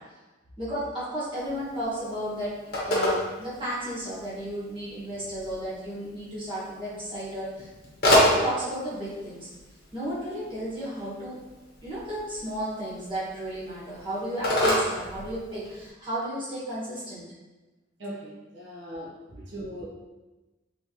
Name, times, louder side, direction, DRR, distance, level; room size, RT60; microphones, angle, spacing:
voice 1, 0.6-2.6 2.8-7.7 8.0-9.5 9.9-11.4 11.8-17.2, right 1 dB, 25° right, -10 dB, 1.4 m, -33 dB
Telephone, 1.4-15.9, left 1 dB, 50° left, 0.9 m, -30 dB
voice 2, 18.0-19.1 19.5-19.8, equal, 65° right, -6 dB, 0.9 m, -39 dB
3.5 x 3.2 x 2.9 m, 1.1 s
head